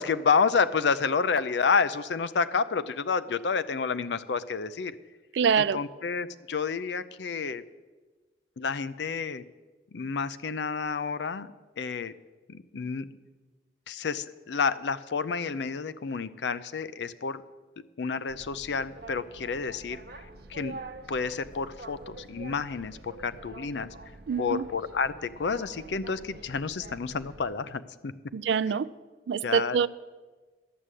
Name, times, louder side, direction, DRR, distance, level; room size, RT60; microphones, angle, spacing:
voice 1, 0.0-5.0 5.6-7.6 8.6-9.4 9.9-11.5 11.8-12.1 12.5-13.1 13.9-17.4 18.0-20.0 20.5-20.8 21.1-23.9 24.4-28.1 29.4-29.8, left 5 dB, 80° left, 0.5 m, -29 dB
voice 2, 5.3-5.8 24.3-24.7 28.3-28.9 29.3-29.9, right 6 dB, 85° right, 0.4 m, -25 dB
Boat Water vehicle, 18.3-27.5, right 2 dB, 60° right, 0.9 m, -46 dB
11.5 x 7.6 x 8.2 m
head